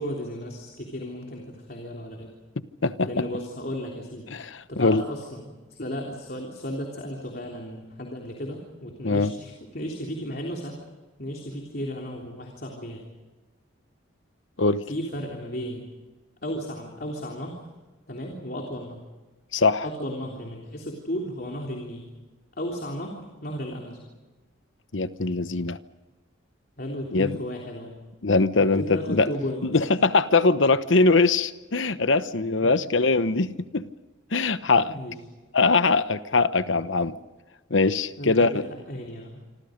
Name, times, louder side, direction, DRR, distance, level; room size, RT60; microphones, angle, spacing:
voice 1, 0.0-2.3 3.1-4.3 4.7-10.8 11.2-13.0 14.9-15.8 16.4-17.6 18.1-19.0 19.8-22.1 22.6-24.0 26.8-27.9 28.7-29.7 32.6-32.8 34.9-35.2 38.2-39.4, equal, 50° left, 1 dB, 3.4 m, -34 dB
voice 2, 4.3-5.0 9.0-9.3 14.6-14.8 19.5-19.9 24.9-25.8 27.1-27.4 28.2-29.3 29.6-33.9 34.3-34.9 35.5-37.2 37.7-38.5, left 3 dB, 70° left, 13 dB, 1.0 m, -22 dB
27.0 x 26.5 x 5.2 m, 1.2 s
head